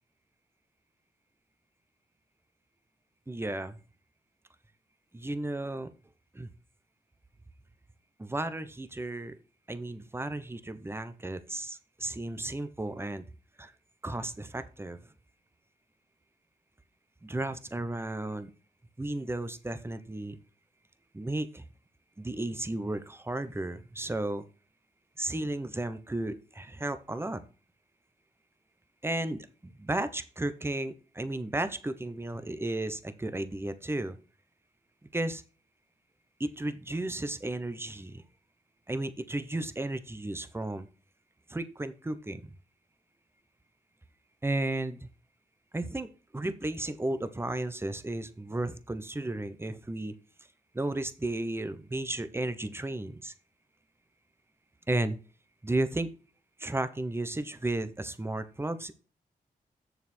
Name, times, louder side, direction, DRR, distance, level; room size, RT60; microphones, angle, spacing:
voice 1, 3.3-3.8 5.1-5.9 6.3-6.5 8.2-9.3 9.7-13.2 13.6-13.7 14.0-15.0 17.2-18.5 19.0-20.4 21.1-21.6 22.2-24.4 25.2-27.4 29.0-34.2 35.1-35.4 36.4-38.2 38.9-40.9 41.5-42.5 44.4-45.1 45.7-50.1 50.7-53.3 54.9-55.2 55.6-56.1 56.6-58.9, right 2 dB, 15° right, 11 dB, 0.9 m, -34 dB
6.8 x 6.7 x 4.4 m, 0.36 s
cardioid pair, 70°, 15 cm